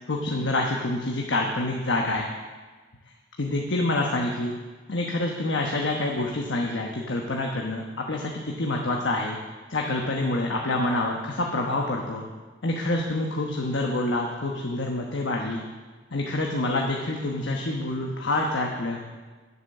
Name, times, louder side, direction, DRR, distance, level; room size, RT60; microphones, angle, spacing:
voice 1, 0.1-2.3 3.4-4.5 4.9-9.4 9.7-12.2 12.6-15.6 16.1-19.0, left 2 dB, 75° left, 0 dB, 1.1 m, -27 dB
10.5 x 8.2 x 6.6 m, 1.4 s
head